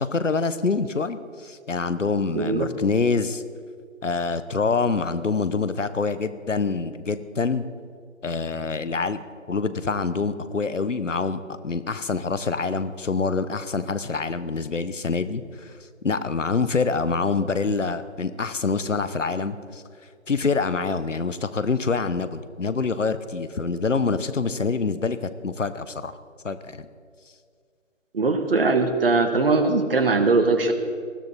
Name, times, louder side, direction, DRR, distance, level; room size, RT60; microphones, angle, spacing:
voice 1, 0.0-3.4 4.0-7.7 8.2-9.2 9.5-15.7 16.0-19.8 20.3-26.1 26.4-26.9, left 4 dB, 70° left, 12 dB, 1.1 m, -26 dB
voice 2, 2.3-2.7 28.1-30.7, right 3 dB, 45° right, 7 dB, 1.5 m, -20 dB
20.0 x 13.5 x 4.2 m, 2.1 s
figure-of-eight pair, 150°, 39 cm